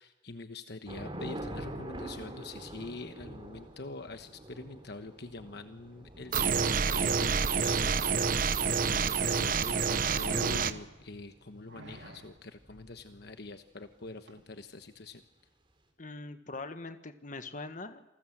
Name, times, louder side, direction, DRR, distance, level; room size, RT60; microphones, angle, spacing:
voice 1, 0.0-15.2, left 3 dB, 60° left, 8 dB, 1.2 m, -45 dB
Thunder / Rain, 0.9-13.4, right 1 dB, 30° right, 3.9 m, -47 dB
sound 1, 6.3-10.7, right 5 dB, 50° right, 0.8 m, -28 dB
sound 2, 9.9-11.1 11.7-12.4 14.3-14.4, right 1 dB, 70° right, 2.6 m, -46 dB
voice 2, 16.0-18.0, left 3 dB, 45° left, 9 dB, 1.4 m, -42 dB
28.0 x 19.5 x 7.9 m, 0.96 s
head